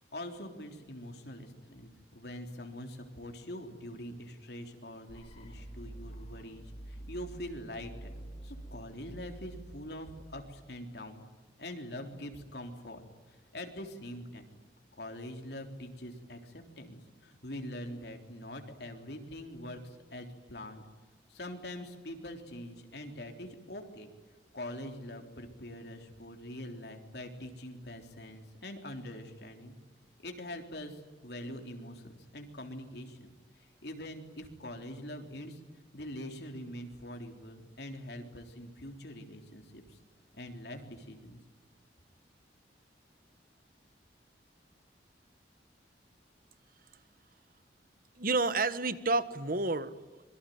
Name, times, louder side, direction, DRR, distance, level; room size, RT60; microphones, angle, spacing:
voice 1, 0.1-11.2 11.6-14.4 14.9-20.8 21.3-24.1 24.5-29.7 30.2-35.6 35.9-40.0 40.3-41.4, left 1 dB, 65° left, 4 dB, 3.6 m, -44 dB
sound 1, 5.1-11.0, right 1 dB, 35° left, 3.1 m, -48 dB
voice 2, 48.2-50.2, right 3 dB, 50° right, 13 dB, 1.4 m, -30 dB
26.0 x 23.5 x 9.4 m, 1.2 s
head